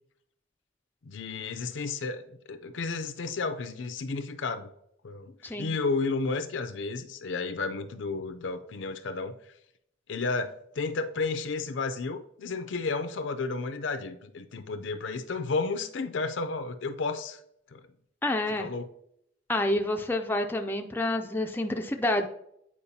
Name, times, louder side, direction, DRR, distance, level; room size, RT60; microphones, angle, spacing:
voice 1, 1.0-4.7 5.0-9.3 10.1-17.4 17.7-17.8 18.5-18.9, left 4 dB, 70° left, 9 dB, 0.5 m, -32 dB
voice 2, 18.2-18.7 19.5-22.3, left 1 dB, 10° left, 4 dB, 0.4 m, -28 dB
8.6 x 4.6 x 2.7 m, 0.75 s
head